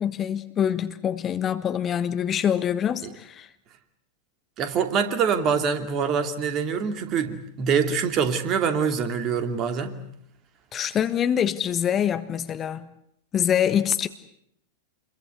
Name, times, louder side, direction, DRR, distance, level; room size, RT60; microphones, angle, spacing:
voice 1, 0.0-3.5 10.7-12.9 13.3-14.1, left 9 dB, 25° left, 1.3 m, -25 dB
voice 2, 4.6-10.0, right 6 dB, 35° right, 2.6 m, -25 dB
28.0 x 22.0 x 8.1 m
figure-of-eight pair, 90°, 0 cm